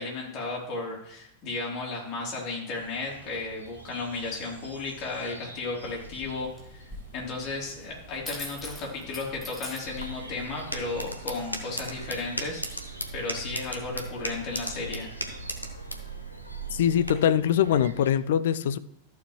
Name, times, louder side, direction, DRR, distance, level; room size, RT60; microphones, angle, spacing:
voice 1, 0.0-12.6 13.1-15.2, left 3 dB, 35° left, 3.3 m, -34 dB
sound 1, 2.7-18.1, right 1 dB, 80° right, 1.6 m, -49 dB
sound 2, 5.8-10.8, left 2 dB, 5° left, 2.9 m, -44 dB
sound 3, 9.9-17.1, right 1 dB, 85° left, 1.1 m, -37 dB
voice 2, 16.7-18.8, left 9 dB, 60° left, 0.5 m, -23 dB
13.5 x 7.1 x 3.1 m
figure-of-eight pair, 90°, 0 cm